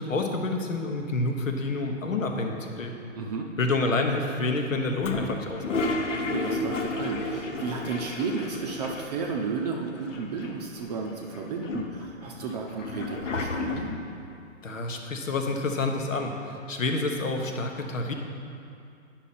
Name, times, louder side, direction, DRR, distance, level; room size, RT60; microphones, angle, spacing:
voice 1, 0.0-2.9 3.6-5.6 14.6-18.1, left 2 dB, 85° left, 3 dB, 1.2 m, -28 dB
voice 2, 3.2-3.5 6.1-13.9, right 4 dB, 35° right, 1 dB, 0.6 m, -33 dB
Toilet flush, 5.0-9.4 9.6-9.7 9.9-10.8 11.3-14.1, left 3 dB, 70° left, 1.0 m, -32 dB
10.0 x 5.8 x 4.2 m, 2.5 s
hypercardioid pair, 140°, 38 cm